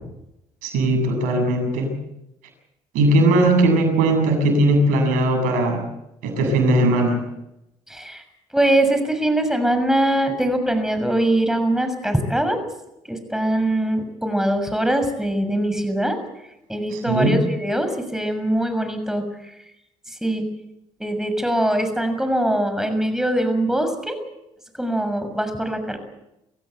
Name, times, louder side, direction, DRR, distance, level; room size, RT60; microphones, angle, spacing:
voice 1, 0.6-2.0 2.9-5.8 6.2-7.2 17.1-17.4, right 1 dB, 85° right, 5 dB, 7.5 m, -18 dB
voice 2, 7.9-8.2 8.5-12.6 13.1-16.2 16.7-19.6 20.1-20.5 21.0-24.2 24.7-26.0, right 1 dB, 5° right, 8 dB, 6.5 m, -22 dB
25.0 x 16.0 x 8.2 m, 0.87 s
supercardioid pair, 65°, 13 cm